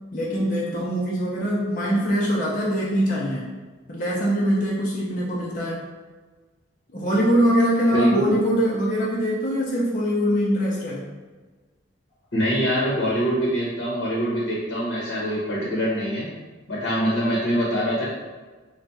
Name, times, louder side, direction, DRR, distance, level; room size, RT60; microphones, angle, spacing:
voice 1, 0.1-3.5 3.9-5.8 6.9-11.0, equal, 45° left, -6 dB, 0.8 m, -23 dB
voice 2, 7.9-8.4 12.3-16.3 16.7-18.0, equal, 65° left, -6 dB, 1.0 m, -24 dB
3.5 x 2.4 x 4.1 m, 1.3 s
head